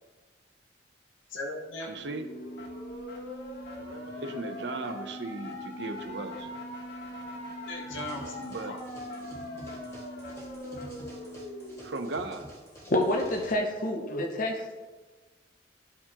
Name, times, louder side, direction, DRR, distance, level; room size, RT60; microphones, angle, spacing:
voice 1, 1.3-2.0 7.7-8.8 14.1-14.3, left 1 dB, 90° left, 0 dB, 1.1 m, -37 dB
voice 2, 1.9-2.2 3.8-6.5 8.5-8.8 11.8-12.5, right 2 dB, 65° right, 6 dB, 0.7 m, -37 dB
sound 1, 2.0-12.0, left 1 dB, 65° left, 1.6 m, -40 dB
sound 2, 7.9-13.5, right 1 dB, 15° left, 1.9 m, -48 dB
voice 3, 12.9-14.5, left 1 dB, 45° left, 3 dB, 0.7 m, -28 dB
13.5 x 4.5 x 2.9 m, 1.3 s
head